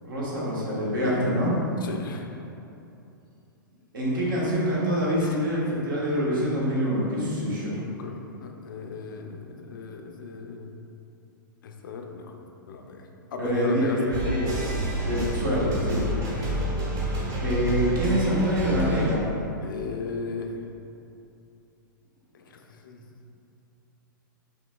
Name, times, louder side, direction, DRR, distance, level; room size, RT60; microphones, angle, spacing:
voice 1, 0.0-1.5 3.9-7.9 13.4-14.5 15.0-16.0 17.4-19.2, equal, 70° right, -7 dB, 1.4 m, -25 dB
voice 2, 1.8-2.3 5.2-5.4 8.0-10.7 11.6-12.3 12.7-14.2 19.6-20.5 22.3-23.1, left 5 dB, 70° left, 3 dB, 0.5 m, -37 dB
sound 1, 14.1-19.1, equal, 30° right, 0.9 m, -29 dB
5.2 x 3.3 x 2.3 m, 2.8 s
hypercardioid pair, 120°, 11 cm